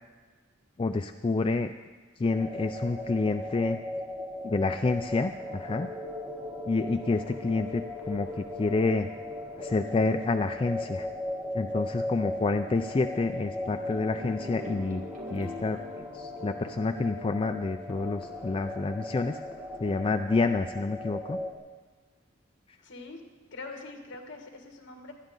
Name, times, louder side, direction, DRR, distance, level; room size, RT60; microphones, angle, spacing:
voice 1, 0.8-1.7 2.2-3.8 4.4-5.9 6.7-9.1 9.6-11.1 11.5-15.0 15.3-19.4 19.8-21.4, left 3 dB, 25° left, 7 dB, 0.4 m, -28 dB
sound 1, 2.3-21.5, left 1 dB, 10° right, 1.7 m, -37 dB
sound 2, 12.2-17.5, left 1 dB, 45° right, 1.7 m, -46 dB
voice 2, 22.8-23.2 23.5-25.1, left 3 dB, 65° left, 3 dB, 2.0 m, -43 dB
18.5 x 12.0 x 3.8 m, 1.4 s
head